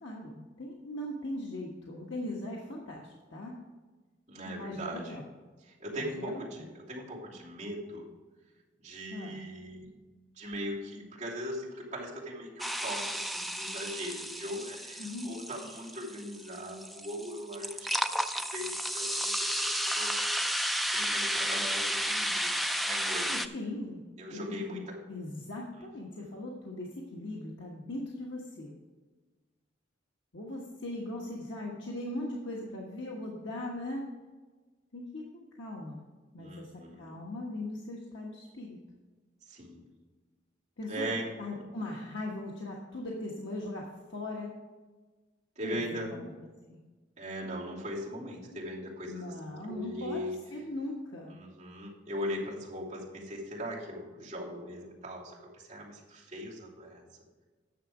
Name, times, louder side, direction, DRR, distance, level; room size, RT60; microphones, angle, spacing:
voice 1, 0.0-3.6 4.4-5.2 5.9-6.6 9.1-9.4 15.0-15.3 23.3-24.0 24.3-28.7 30.3-34.1 34.9-36.0 36.3-38.8 40.8-44.5 45.6-46.3 46.7-46.8 49.1-50.2 50.5-51.3, left 1 dB, 75° left, -2 dB, 1.3 m, -39 dB
voice 2, 4.3-5.2 5.8-8.0 8.8-9.9 10.4-20.2 20.5-22.5 22.8-23.4 24.2-25.0 36.4-37.1 39.5-39.9 40.9-41.6 45.6-46.2 47.2-50.4 51.3-57.0, equal, 40° right, -6 dB, 2.9 m, -40 dB
sound 1, 12.6-23.5, equal, ahead, 0.3 m, -32 dB
10.0 x 6.9 x 4.9 m, 1.3 s
head